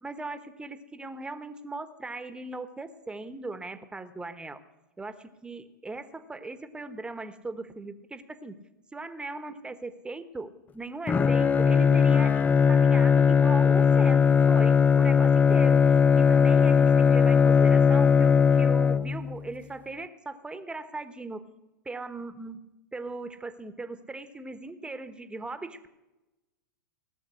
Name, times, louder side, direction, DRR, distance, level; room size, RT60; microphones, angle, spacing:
voice 1, 0.0-4.6 5.0-8.6 8.9-12.4 12.7-21.4 21.8-22.6 22.9-25.9, right 3 dB, 10° right, 10 dB, 1.2 m, -39 dB
Bowed string instrument, 11.1-19.4, left 6 dB, 15° left, 0.4 m, -20 dB
18.0 x 7.3 x 9.9 m, 1.0 s
hypercardioid pair, 105°, 10 cm